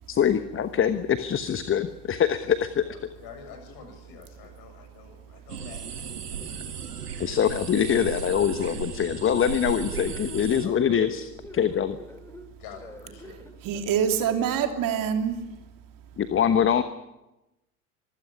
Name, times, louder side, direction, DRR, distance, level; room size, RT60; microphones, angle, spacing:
voice 1, 0.1-2.8 7.2-12.0 16.2-16.8, left 8 dB, 25° left, 12 dB, 1.2 m, -24 dB
voice 2, 2.9-6.1 6.4-6.7 10.6-11.0 12.6-13.4, left 7 dB, 50° left, 5 dB, 7.3 m, -47 dB
sound 1, 5.5-10.7, right 7 dB, 85° right, 1.9 m, -36 dB
sound 2, 9.9-14.1, left 2 dB, 5° left, 3.4 m, -43 dB
voice 3, 13.6-15.4, right 8 dB, 45° right, 5 dB, 3.1 m, -25 dB
24.5 x 15.5 x 9.9 m, 0.96 s
figure-of-eight pair, 70°, 46 cm